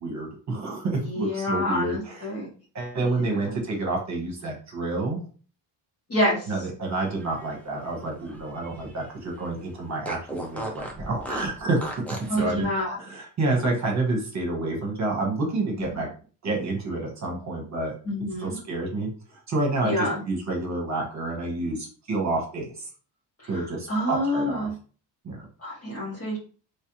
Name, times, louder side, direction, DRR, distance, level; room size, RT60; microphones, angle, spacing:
voice 1, 0.0-2.2 2.7-5.2 6.5-12.7 13.0-16.1 16.4-17.9 18.4-19.1 19.5-22.9 23.5-24.7 25.2-25.5, right 2 dB, 40° right, 0 dB, 1.2 m, -29 dB
voice 2, 1.0-2.5 3.0-3.5 6.1-6.5 12.3-13.0 15.8-16.0 18.0-18.6 19.8-20.2 23.5-24.7 25.6-26.4, left 1 dB, 35° left, -5 dB, 1.6 m, -28 dB
Fart, 7.0-9.1 9.4-9.5 10.0-12.4, equal, 5° left, 0.5 m, -37 dB
3.3 x 3.2 x 3.0 m, 0.39 s
cardioid pair, 160°, 43 cm